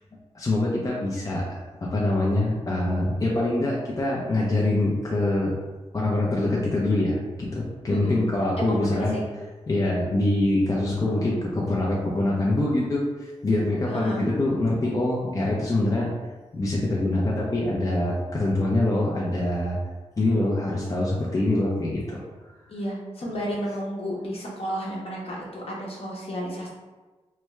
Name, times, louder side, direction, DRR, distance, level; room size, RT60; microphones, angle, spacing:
voice 1, 0.3-5.5 5.9-9.2 9.7-16.1 16.5-19.8 20.2-22.2, left 1 dB, 30° left, -4 dB, 0.6 m, -24 dB
voice 2, 7.9-8.3 8.6-9.2 13.9-14.2 22.7-26.7, equal, 55° left, -3 dB, 0.9 m, -32 dB
3.2 x 2.3 x 3.1 m, 1.2 s
cardioid pair, 75°, 12 cm